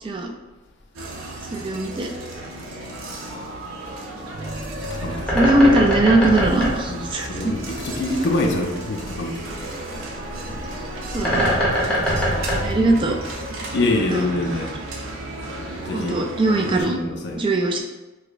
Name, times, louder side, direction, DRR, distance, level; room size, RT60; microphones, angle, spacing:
voice 1, 0.0-0.3 1.5-2.1 5.3-7.5 11.1-11.5 12.6-13.2 14.1-14.2 15.9-17.0 17.3-17.8, right 2 dB, 25° right, 1 dB, 0.3 m, -20 dB
sound 1, 1.0-16.8, right 2 dB, 75° right, 0.6 m, -33 dB
Bird, 4.4-13.6, equal, 5° left, 0.9 m, -25 dB
voice 2, 6.9-9.6 13.7-14.7 15.9-16.2 16.7-17.4, left 2 dB, 60° left, 2 dB, 0.5 m, -25 dB
4.7 x 2.1 x 2.4 m, 1.1 s
head